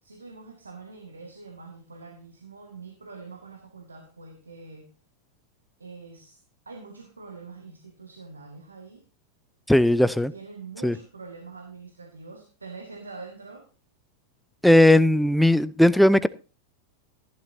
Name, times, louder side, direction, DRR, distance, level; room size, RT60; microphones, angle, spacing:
voice 1, 0.0-4.9 5.8-6.4 6.6-9.1 10.3-13.7, right 4 dB, 75° right, 1.8 m, -44 dB
voice 2, 9.7-10.3 10.8-10.9 14.6-16.3, left 1 dB, ahead, 0.5 m, -17 dB
14.5 x 11.5 x 2.7 m
figure-of-eight pair, 90°, 0 cm